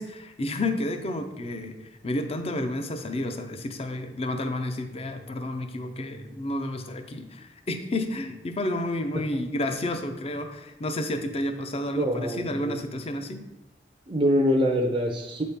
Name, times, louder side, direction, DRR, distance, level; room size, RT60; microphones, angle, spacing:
voice 1, 0.0-1.8 2.0-13.4, left 1 dB, 35° left, 7 dB, 0.5 m, -31 dB
voice 2, 11.9-12.8 14.1-15.4, equal, 30° right, 1 dB, 0.5 m, -24 dB
8.0 x 4.2 x 3.5 m, 0.93 s
head